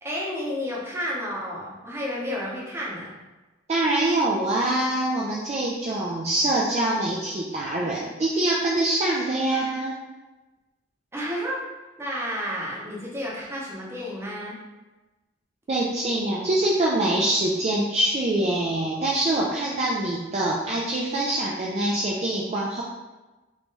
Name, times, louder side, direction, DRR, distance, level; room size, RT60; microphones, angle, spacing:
voice 1, 0.0-3.1 11.1-11.6 12.0-14.5, equal, 15° right, -5 dB, 0.7 m, -31 dB
voice 2, 3.7-9.9 15.7-22.8, right 1 dB, 35° right, -4 dB, 0.3 m, -24 dB
2.9 x 2.7 x 3.6 m, 1.2 s
head